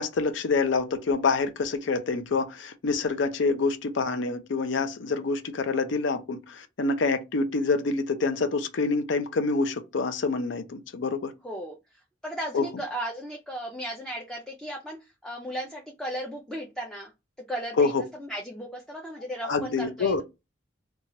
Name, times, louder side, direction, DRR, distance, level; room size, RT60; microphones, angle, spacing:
voice 1, 0.0-11.3 12.5-12.7 17.8-18.0 19.4-20.2, left 4 dB, 75° left, 0.5 m, -26 dB
voice 2, 11.4-17.1 17.5-20.2, right 1 dB, 5° left, 0.4 m, -36 dB
2.8 x 2.3 x 2.9 m
head